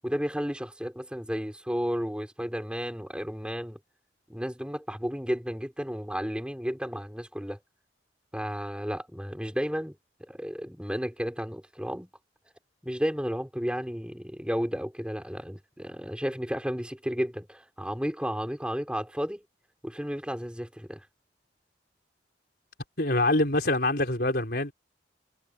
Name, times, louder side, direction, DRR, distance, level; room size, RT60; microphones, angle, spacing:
voice 1, 0.0-3.8 4.3-7.6 8.3-10.0 10.3-12.1 12.8-19.4 19.8-21.0, equal, 5° right, 4.6 m, -32 dB
voice 2, 23.0-24.7, left 2 dB, 60° left, 4.9 m, -25 dB
head